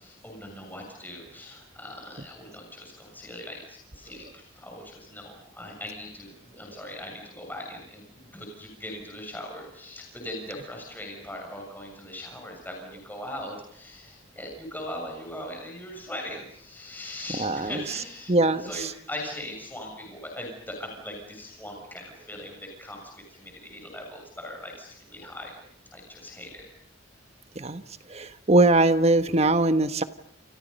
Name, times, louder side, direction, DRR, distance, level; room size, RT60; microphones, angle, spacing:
voice 1, 0.0-25.5 25.9-26.7, left 1 dB, 10° left, 1 dB, 7.0 m, -40 dB
voice 2, 17.3-17.8 18.3-18.9 27.5-27.8 28.1-30.0, right 2 dB, 35° right, 10 dB, 1.3 m, -22 dB
29.0 x 28.5 x 5.5 m, 0.67 s
head